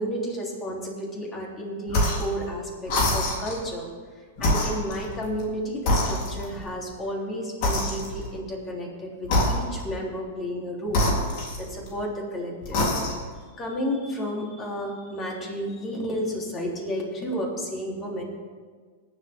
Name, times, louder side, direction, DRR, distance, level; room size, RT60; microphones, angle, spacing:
voice 1, 0.0-3.9 4.2-12.8 13.6-18.2, equal, 25° left, -1 dB, 3.5 m, -32 dB
sound 1, 1.9-2.3 2.9-3.6 4.4-5.5 5.9-6.7 7.6-8.4 9.2-10.0 10.9-12.0 12.6-13.4, left 1 dB, 55° left, 3.7 m, -25 dB
20.0 x 8.0 x 3.7 m, 1.5 s
hypercardioid pair, 115°, 0 cm